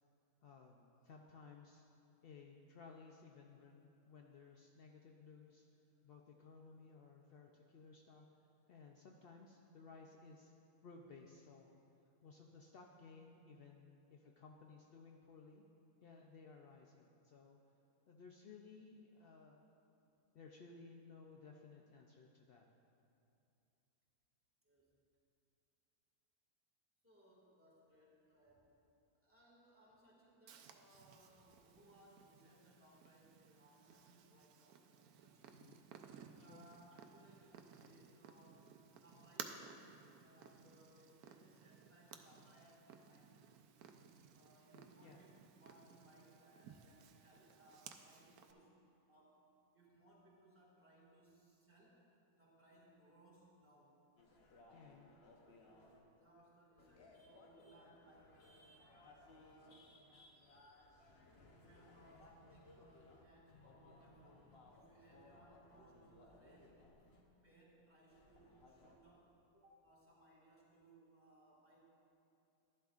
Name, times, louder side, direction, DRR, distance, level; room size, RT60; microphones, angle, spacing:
voice 1, 0.4-1.8 2.2-5.7 6.0-8.3 8.7-10.5 10.8-11.8 12.2-15.6 16.0-17.6 18.1-19.6 20.3-22.7 35.5-35.8 36.4-36.6 44.7-45.2 54.7-55.1, left 4 dB, 75° left, 1 dB, 0.5 m, -59 dB
voice 2, 24.6-25.0 27.0-28.8 29.2-35.7 36.4-38.7 39.0-43.4 44.3-52.1 52.4-54.0 55.6-58.7 59.1-60.0 61.5-66.8 67.4-71.8, right 1 dB, 10° right, -6 dB, 1.9 m, -67 dB
Purr, 30.5-48.5, right 7 dB, 75° right, 1.1 m, -58 dB
sound 1, 54.2-56.0 56.8-63.2 63.5-67.2 68.1-69.0, left 2 dB, 45° left, 1.0 m, -63 dB
12.0 x 11.5 x 2.4 m, 2.7 s
omnidirectional pair, 1.7 m